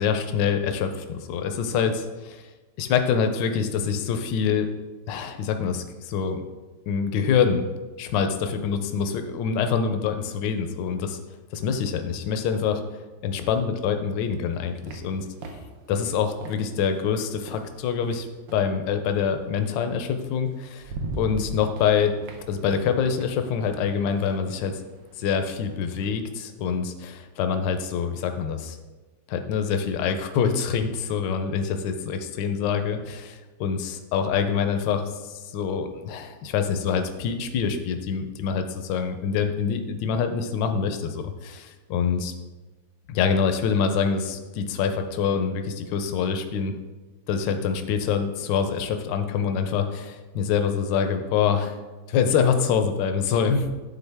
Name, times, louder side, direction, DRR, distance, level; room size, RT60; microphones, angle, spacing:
voice 1, 0.0-2.4 2.8-4.7 5.1-6.4 6.9-7.6 8.0-11.2 11.5-12.8 13.2-15.3 15.9-18.3 18.5-22.1 22.5-24.8 25.2-28.8 29.3-35.1 35.5-42.3 43.1-46.8 47.3-51.7 52.1-53.7, left 6 dB, 80° left, 7 dB, 1.3 m, -25 dB
sound 1, 14.2-18.7 20.0-20.1 20.5-26.2, right 2 dB, 80° right, 1.4 m, -40 dB
9.3 x 4.0 x 3.4 m, 1.2 s
omnidirectional pair, 2.0 m